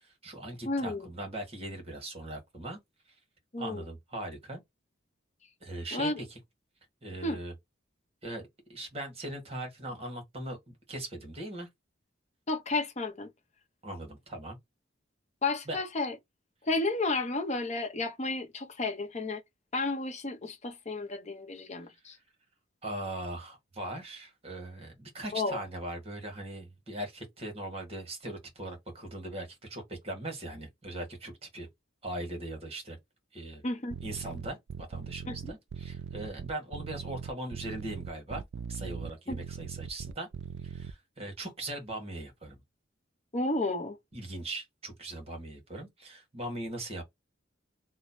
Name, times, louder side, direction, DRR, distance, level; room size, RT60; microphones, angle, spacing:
voice 1, 0.0-2.8 3.6-4.6 5.6-6.4 7.0-7.5 8.2-8.4 8.7-11.7 13.8-14.6 15.7-15.8 22.8-31.7 32.0-33.0 33.3-33.6 34.0-38.4 38.7-40.3 40.6-42.6 44.1-47.0, right 1 dB, 30° right, 1.4 m, -40 dB
voice 2, 0.7-1.1 3.5-3.9 5.9-6.2 7.2-7.4 12.5-13.3 15.4-16.1 16.7-19.4 19.7-22.2 25.3-25.6 33.6-34.0 35.3-35.5 39.3-39.4 43.3-44.0, left 2 dB, 35° left, 0.8 m, -32 dB
sound 1, 33.9-40.9, right 7 dB, 60° right, 0.3 m, -40 dB
3.1 x 2.1 x 4.0 m
head